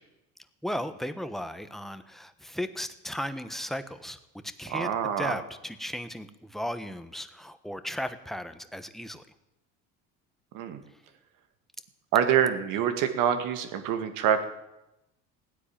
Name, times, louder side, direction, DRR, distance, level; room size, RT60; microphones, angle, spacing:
voice 1, 0.6-4.2 4.6-4.9 5.2-9.3, equal, ahead, 10 dB, 1.3 m, -35 dB
voice 2, 4.7-5.4 10.5-10.8 12.1-14.4, right 9 dB, 70° right, 7 dB, 2.2 m, -26 dB
16.0 x 9.9 x 8.9 m, 0.91 s
supercardioid pair, 95°, 34 cm